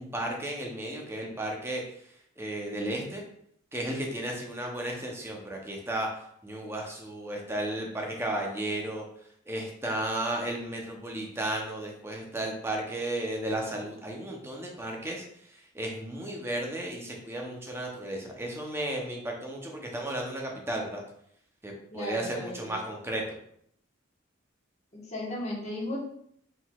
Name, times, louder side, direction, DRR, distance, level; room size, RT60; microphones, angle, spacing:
voice 1, 0.0-1.8 2.4-3.2 3.7-6.1 6.4-9.0 9.5-15.2 15.7-21.0 21.6-23.2, right 1 dB, 10° right, 0 dB, 0.7 m, -34 dB
voice 2, 21.9-22.8 24.9-26.0, left 1 dB, 35° left, -4 dB, 1.2 m, -36 dB
4.5 x 3.8 x 2.3 m, 0.69 s
head